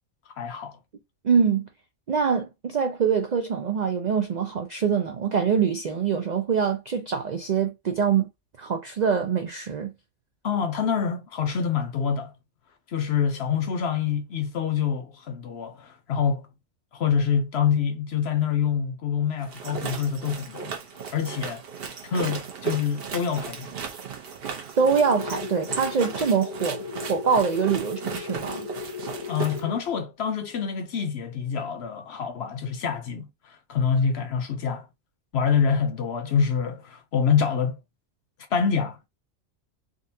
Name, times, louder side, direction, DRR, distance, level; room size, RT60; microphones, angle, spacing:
voice 1, 0.4-0.8 10.4-12.3 12.9-16.5 16.9-20.7 21.1-21.6 22.0-23.7 29.3-34.9 35.3-37.8 38.5-39.1, left 7 dB, 60° left, 0.8 m, -26 dB
voice 2, 1.2-1.6 2.1-8.3 8.6-9.9 24.8-26.8 27.1-28.7, right 6 dB, 80° right, 0.3 m, -24 dB
sound 1, 19.4-29.6, right 6 dB, 55° right, 0.9 m, -36 dB
sound 2, 24.8-29.8, left 6 dB, 85° left, 1.1 m, -37 dB
3.8 x 2.3 x 2.6 m
omnidirectional pair, 1.4 m